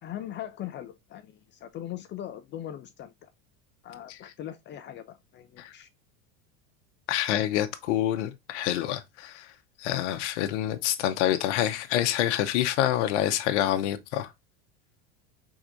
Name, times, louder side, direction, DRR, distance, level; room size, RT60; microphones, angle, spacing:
voice 1, 0.0-3.3 3.8-5.9, left 11 dB, 35° left, 0.4 m, -40 dB
voice 2, 7.1-9.5 9.8-14.3, left 12 dB, 85° left, 0.7 m, -27 dB
4.8 x 3.5 x 2.5 m
supercardioid pair, 130°, 34 cm